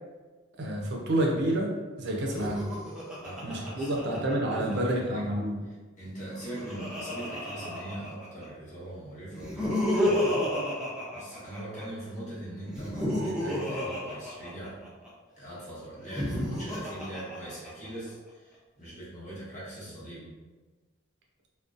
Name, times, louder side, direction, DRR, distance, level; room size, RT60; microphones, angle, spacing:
voice 1, 0.5-2.7 3.4-5.6, right 1 dB, 60° right, 0 dB, 0.4 m, -29 dB
Laughter, 2.2-4.7 6.1-8.4 9.3-11.8 12.7-15.1 15.9-17.9, left 1 dB, 5° right, 0.5 m, -31 dB
voice 2, 3.2-5.3 5.7-10.8 11.1-14.8 15.4-20.4, right 1 dB, 40° left, -9 dB, 1.0 m, -41 dB
2.5 x 2.1 x 2.4 m, 1.3 s
head